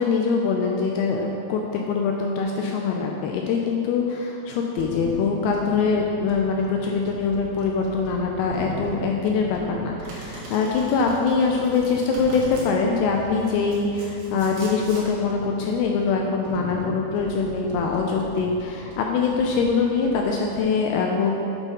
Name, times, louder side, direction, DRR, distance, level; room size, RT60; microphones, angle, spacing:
voice 1, 0.0-21.3, left 5 dB, 85° left, 0 dB, 2.4 m, -23 dB
sound 1, 4.8-20.6, right 3 dB, 90° right, 3.2 m, -39 dB
Domestic sounds home sounds, 10.0-12.7 13.4-15.1, right 1 dB, 60° right, 2.6 m, -42 dB
8.0 x 4.2 x 5.3 m, 2.9 s
omnidirectional pair, 4.9 m